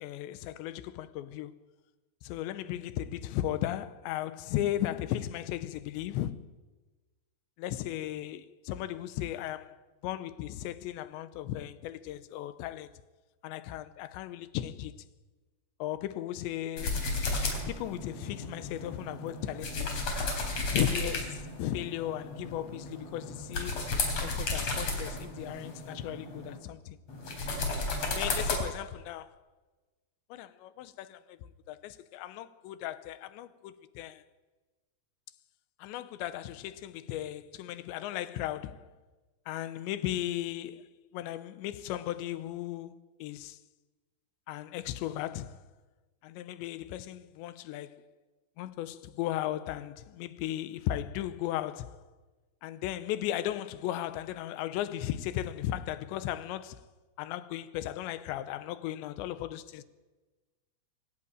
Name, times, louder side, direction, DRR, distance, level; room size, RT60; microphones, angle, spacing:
voice 1, 0.0-1.5 2.2-6.5 7.6-9.8 10.0-12.9 13.4-15.0 15.8-17.0 17.7-20.1 20.7-23.8 24.2-27.0 28.1-29.3 30.3-34.2 35.8-38.9 39.5-43.6 44.5-45.6 46.2-48.0 48.6-52.0 52.6-56.8 57.2-59.8, left 13 dB, 85° left, 3.2 m, -36 dB
sound 1, 16.8-26.6 27.1-28.6, left 3 dB, 40° left, 4.5 m, -34 dB
24.5 x 15.5 x 8.9 m
omnidirectional pair, 5.0 m